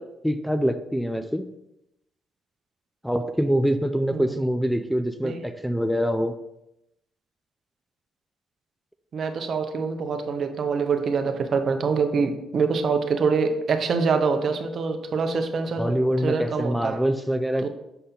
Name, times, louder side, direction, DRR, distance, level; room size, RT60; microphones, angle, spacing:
voice 1, 0.0-1.5 3.0-6.4 15.8-17.7, equal, ahead, 8 dB, 0.3 m, -25 dB
voice 2, 9.1-15.9 16.2-17.0 17.6-17.7, right 5 dB, 55° right, 7 dB, 0.7 m, -25 dB
6.7 x 4.2 x 3.8 m, 0.87 s
cardioid pair, 90°, 0 cm